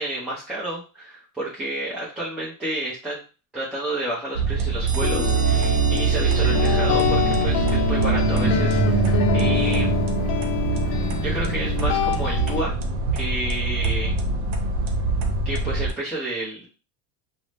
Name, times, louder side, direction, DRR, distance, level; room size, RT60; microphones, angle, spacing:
voice 1, 0.0-3.2 3.5-10.0 10.9-12.7 13.1-14.1 15.4-16.6, right 1 dB, ahead, -8 dB, 0.4 m, -30 dB
sound 1, 4.3-15.9, right 4 dB, 80° right, 0.8 m, -23 dB
sound 2, 4.9-8.4, right 5 dB, 50° right, 0.8 m, -34 dB
sound 3, 5.0-12.6, left 11 dB, 60° left, 0.5 m, -26 dB
2.6 x 2.0 x 3.2 m, 0.32 s
cardioid pair, 155°, 44 cm